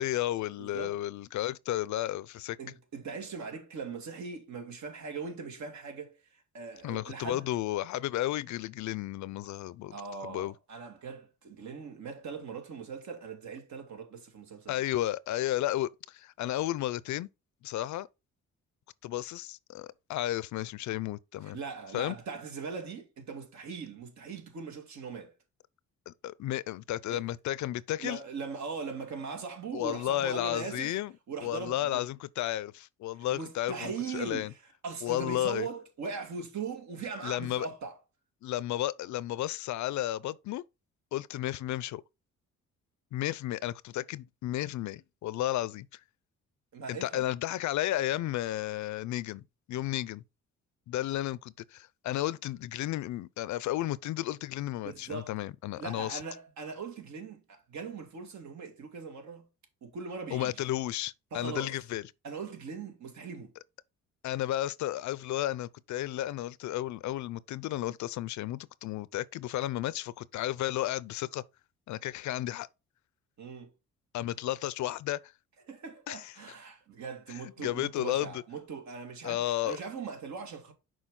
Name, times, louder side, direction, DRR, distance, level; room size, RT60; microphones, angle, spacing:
voice 1, 0.0-2.6 6.8-9.9 10.2-10.5 14.7-17.3 17.6-18.1 19.0-21.6 21.9-22.2 26.1-28.2 29.7-31.1 31.4-34.5 35.0-35.7 37.2-37.7 38.4-40.6 41.1-42.0 43.1-46.0 46.9-50.2 50.9-56.2 60.3-62.0 64.2-71.4 71.9-72.7 74.1-75.3 76.1-76.3 77.3-78.4 79.2-79.8, left 14 dB, 70° left, 0.5 m, -33 dB
voice 2, 0.6-1.0 2.6-7.5 9.9-14.8 21.4-25.3 27.1-27.3 28.0-30.9 31.3-32.1 33.2-34.5 34.8-38.0 46.7-47.3 54.8-55.3 55.8-59.5 59.8-60.5 61.3-61.8 62.2-63.5 73.4-73.7 75.7-80.7, right 5 dB, 65° right, 2.2 m, -40 dB
6.3 x 4.7 x 3.7 m
cardioid pair, 90°, 30 cm